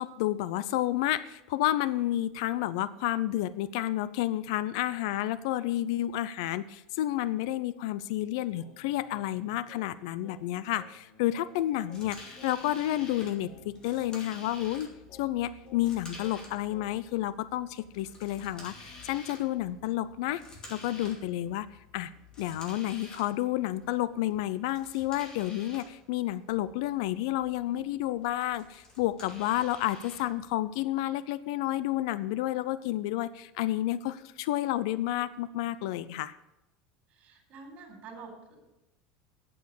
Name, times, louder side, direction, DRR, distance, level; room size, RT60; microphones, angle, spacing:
voice 1, 0.0-14.9 15.2-20.4 20.7-21.7 21.9-22.1 22.4-36.4, left 14 dB, 75° left, 16 dB, 0.5 m, -30 dB
Singing, 8.6-17.2, left 6 dB, 55° left, 1.7 m, -56 dB
sound 1, 11.9-31.0, left 2 dB, 25° left, 2.4 m, -51 dB
voice 2, 37.1-38.6, right 4 dB, 45° right, 2 dB, 4.0 m, -47 dB
8.6 x 8.3 x 6.6 m, 0.96 s
supercardioid pair, 135°, 3 cm